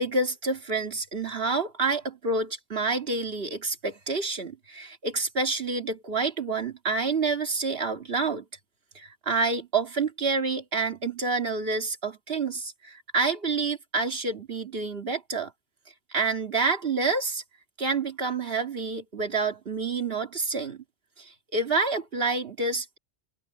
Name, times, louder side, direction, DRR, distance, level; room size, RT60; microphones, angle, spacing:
voice 1, 0.0-8.5 8.9-15.5 16.1-17.4 17.8-20.8 21.2-23.0, right 3 dB, 70° right, 2.2 m, -28 dB
omnidirectional pair, 1.0 m